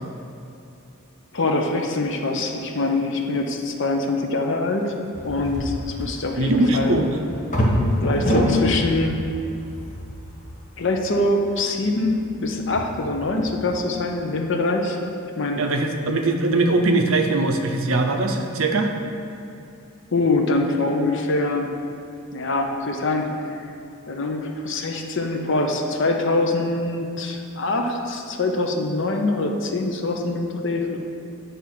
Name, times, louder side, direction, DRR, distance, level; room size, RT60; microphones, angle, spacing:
voice 1, 1.3-4.9 5.2-7.0 8.0-9.2 10.8-15.0 15.4-15.6 20.1-21.7 22.3-23.3 24.1-31.0, left 2 dB, 55° left, 3 dB, 0.7 m, -24 dB
sound 1, 5.1-13.8, left 1 dB, 35° left, 1.1 m, -27 dB
voice 2, 6.4-7.2 15.6-18.9, right 2 dB, 70° right, 5 dB, 0.6 m, -21 dB
8.6 x 3.5 x 6.0 m, 2.7 s
head